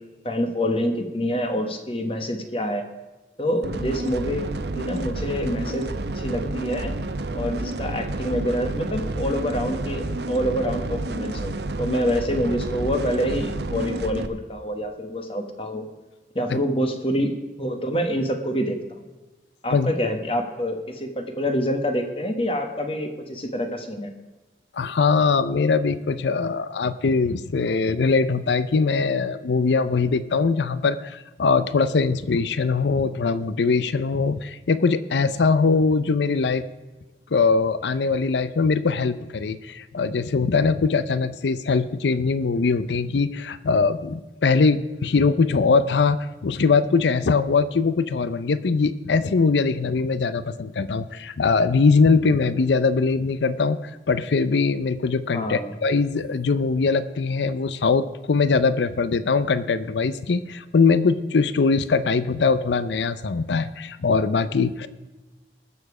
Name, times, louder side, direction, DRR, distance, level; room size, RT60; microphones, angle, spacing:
voice 1, 0.2-2.9 3.4-4.5 4.8-6.9 7.3-11.5 11.8-15.9 16.3-19.0 19.6-24.1 55.3-55.7, equal, 30° left, 5 dB, 1.2 m, -26 dB
sound 1, 3.6-14.3, right 2 dB, 75° right, 0.8 m, -30 dB
voice 2, 24.7-36.7 37.3-64.9, left 4 dB, 85° left, 14 dB, 0.5 m, -21 dB
20.0 x 7.1 x 4.8 m, 1.2 s
head